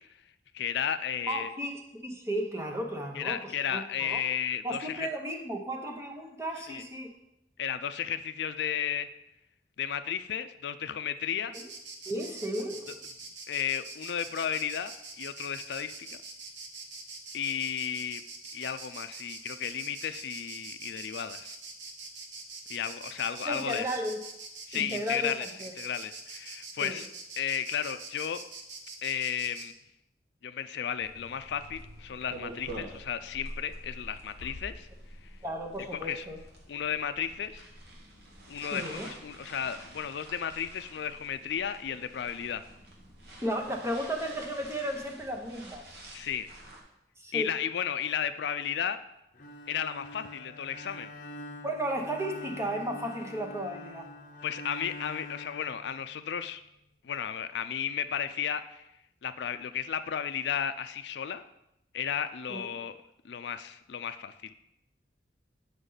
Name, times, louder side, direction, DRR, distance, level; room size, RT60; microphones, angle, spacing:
voice 1, 0.5-1.5 3.1-5.1 6.7-6.8 7.6-9.1 9.8-11.5 13.5-16.2 17.3-18.2 18.5-21.6 22.7-23.9 24.7-25.5 25.8-27.1 27.4-28.4 29.0-29.7 30.4-34.9 36.0-36.3 36.7-37.6 38.5-42.6 46.1-46.5 47.3-49.0 49.7-51.1 54.4-56.6 57.0-58.9 59.2-61.4 61.9-63.0 63.2-64.6, left 8 dB, 70° left, 11 dB, 0.4 m, -33 dB
voice 2, 1.3-4.2 4.6-7.1 11.5-11.6 12.1-12.9 23.5-24.2 24.7-25.7 26.8-27.0 35.4-36.4 38.6-39.1 43.4-46.0 47.2-47.5 51.6-54.1 62.5-62.7, right 1 dB, 15° right, 2 dB, 0.9 m, -34 dB
Insect, 11.5-29.7, right 3 dB, 85° right, 1.0 m, -44 dB
sound 1, 31.0-46.8, right 1 dB, 60° right, 1.4 m, -47 dB
Bowed string instrument, 49.3-56.5, left 2 dB, 45° left, 0.7 m, -45 dB
8.0 x 5.2 x 3.9 m, 0.85 s
head